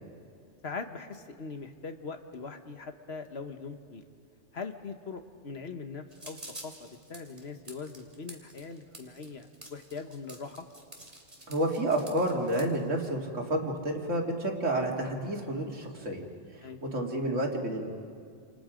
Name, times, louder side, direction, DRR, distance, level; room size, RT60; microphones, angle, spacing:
voice 1, 0.6-4.0 4.5-10.6 16.6-16.8, left 4 dB, 55° left, 7 dB, 1.5 m, -41 dB
sound 1, 6.1-12.7, right 1 dB, 30° right, 3.0 m, -48 dB
voice 2, 11.5-16.2 16.9-17.9, right 1 dB, 75° right, 0 dB, 2.7 m, -30 dB
28.0 x 27.5 x 5.1 m, 2.2 s
omnidirectional pair, 1.3 m